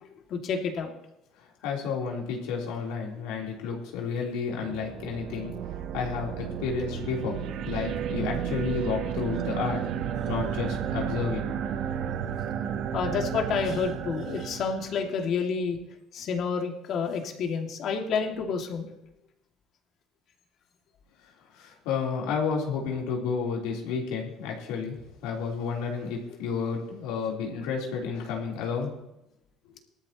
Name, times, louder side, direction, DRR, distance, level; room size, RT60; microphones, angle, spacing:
voice 1, 0.3-0.9 12.9-15.8 16.1-18.9, left 5 dB, 55° left, 2 dB, 2.2 m, -29 dB
voice 2, 1.6-5.5 5.9-9.8 10.3-11.4 21.6-25.0 25.2-28.9, left 5 dB, 85° left, -2 dB, 3.5 m, -31 dB
sound 1, 4.6-15.1, right 9 dB, 65° right, 0.8 m, -32 dB
18.5 x 13.0 x 3.0 m, 0.86 s
supercardioid pair, 100°, 0 cm